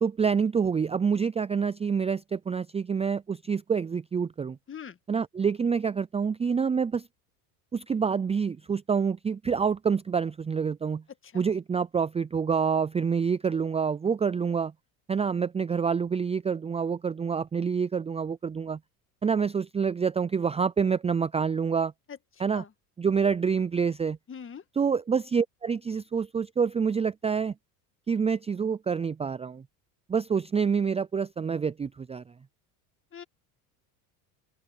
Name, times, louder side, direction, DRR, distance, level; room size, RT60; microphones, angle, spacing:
voice 1, 0.0-4.6 5.1-7.1 7.7-11.0 11.3-14.7 15.1-18.8 19.2-21.9 22.4-22.6 23.0-24.2 24.8-27.5 28.1-29.6 30.1-32.2, right 6 dB, 15° right, 0.5 m, -27 dB
voice 2, 24.3-24.6 33.1-33.2, left 7 dB, 30° left, 1.9 m, -41 dB
open air
hypercardioid pair, 85°, 44 cm